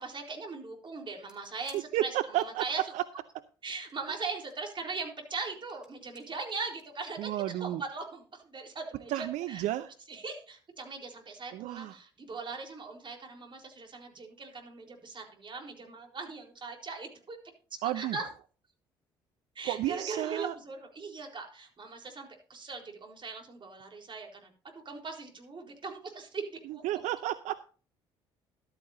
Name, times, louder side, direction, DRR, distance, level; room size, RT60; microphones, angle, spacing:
voice 1, 0.0-2.8 3.6-9.7 10.1-17.4 17.7-18.3 19.5-26.8, right 4 dB, 40° right, 2 dB, 4.1 m, -40 dB
sound 1, 1.3-2.9 3.7-4.7 5.2-6.2 6.8-7.6 8.7-8.8, right 1 dB, 5° right, 3.5 m, -58 dB
voice 2, 1.9-2.6 2.9-3.0 7.2-7.8 9.1-9.9 11.5-12.0 17.8-18.2 19.6-20.5 26.8-27.6, right 14 dB, 65° right, 13 dB, 0.6 m, -32 dB
14.0 x 12.5 x 2.7 m, 0.39 s
hypercardioid pair, 50°, 13 cm